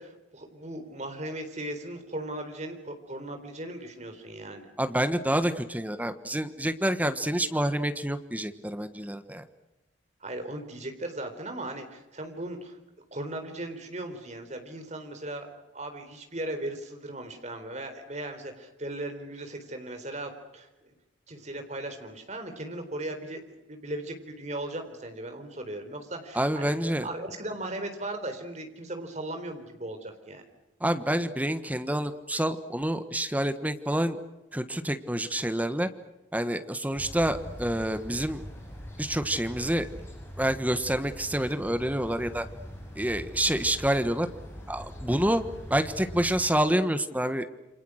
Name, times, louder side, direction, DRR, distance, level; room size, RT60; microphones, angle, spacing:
voice 1, 0.0-4.7 10.2-12.8 13.1-20.7 21.3-23.4 23.7-26.7 27.0-30.4, right 1 dB, 35° right, 6 dB, 4.0 m, -37 dB
voice 2, 4.8-9.4 26.3-27.1 30.8-34.2 34.5-35.9 36.3-38.4 39.0-39.9 40.4-42.5 42.9-44.3 44.7-45.4 45.7-47.5, right 1 dB, 10° right, 10 dB, 1.3 m, -27 dB
sound 1, 36.9-46.4, equal, 10° left, 7.6 m, -42 dB
28.5 x 26.0 x 6.5 m, 0.99 s
head